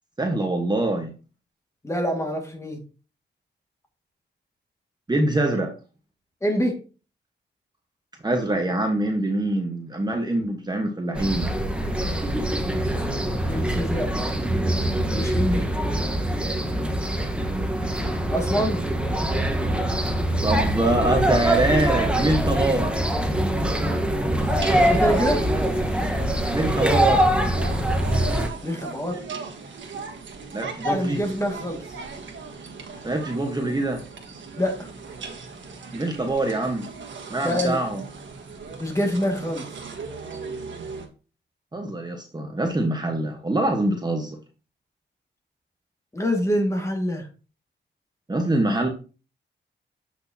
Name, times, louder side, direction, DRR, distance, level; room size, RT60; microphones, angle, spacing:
voice 1, 0.2-1.1 5.1-5.7 8.2-11.5 20.4-22.9 26.5-27.3 30.5-31.2 33.0-34.0 35.9-36.8 37.3-38.0 41.7-44.4 48.3-48.9, right 1 dB, 20° right, 3 dB, 1.2 m, -24 dB
voice 2, 1.8-2.8 6.4-6.8 13.5-14.3 15.1-15.7 18.3-18.8 24.9-25.4 28.6-29.2 30.8-31.8 34.6-34.9 37.4-37.8 38.8-39.7 46.1-47.3, equal, 15° left, 3 dB, 1.9 m, -25 dB
sound 1, 11.2-28.5, right 1 dB, 5° right, 1.2 m, -23 dB
sound 2, 24.4-41.1, right 4 dB, 75° right, 1.4 m, -38 dB
7.9 x 6.2 x 2.8 m, 0.34 s
cardioid pair, 95°, 19 cm